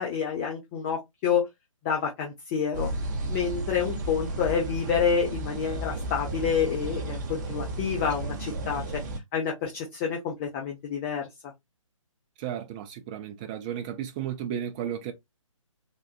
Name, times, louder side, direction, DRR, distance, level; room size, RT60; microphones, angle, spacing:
voice 1, 0.0-1.5 1.8-2.9 3.3-9.0 9.3-11.3, left 7 dB, 25° left, 0.7 m, -28 dB
sound 1, 2.7-9.2, right 1 dB, 35° right, 0.7 m, -33 dB
voice 2, 12.4-15.1, right 9 dB, 15° right, 0.3 m, -34 dB
3.6 x 2.4 x 2.4 m
figure-of-eight pair, 140°, 17 cm